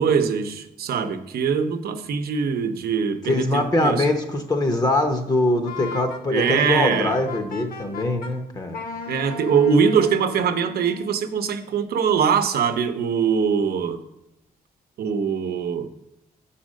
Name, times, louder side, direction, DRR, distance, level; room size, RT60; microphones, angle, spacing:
voice 1, 0.0-4.1 6.3-7.2 9.1-14.0 15.0-15.9, right 6 dB, 80° right, 0.7 m, -22 dB
voice 2, 3.3-8.8, left 2 dB, 25° left, 0.7 m, -23 dB
Wind instrument woodwind instrument, 5.7-8.3 8.7-11.1, left 4 dB, 75° left, 1.0 m, -36 dB
7.4 x 4.2 x 6.3 m
wide cardioid pair, 170°, 16 cm